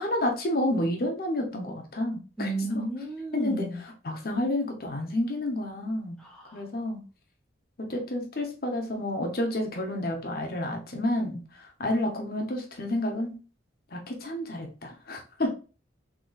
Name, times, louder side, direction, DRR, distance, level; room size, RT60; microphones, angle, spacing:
voice 1, 0.0-2.8 3.3-3.6 4.0-6.2 6.5-7.0 7.9-13.4 13.9-15.5, left 1 dB, 55° left, 2 dB, 0.8 m, -30 dB
voice 2, 2.4-3.8 6.2-6.6, right 1 dB, 5° left, -2 dB, 0.8 m, -33 dB
3.8 x 3.0 x 2.3 m, 0.34 s
head